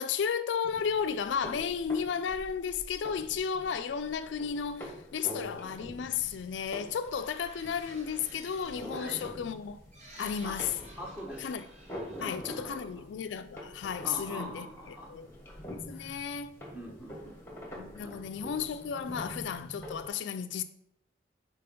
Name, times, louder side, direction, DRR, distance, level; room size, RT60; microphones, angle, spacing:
voice 1, 0.0-9.8 10.2-10.7 11.4-11.7 12.2-15.3 15.7-16.5 17.8-20.6, left 7 dB, 70° left, 0.3 m, -33 dB
sound 1, 0.6-20.1, equal, 10° left, 1.2 m, -46 dB
sound 2, 6.8-13.3, right 1 dB, 35° right, 1.1 m, -53 dB
voice 2, 11.0-11.6 12.1-12.9 14.0-15.1 15.9-16.2 16.7-17.3 18.0-18.4, equal, 5° right, 1.1 m, -43 dB
4.5 x 4.4 x 5.2 m
head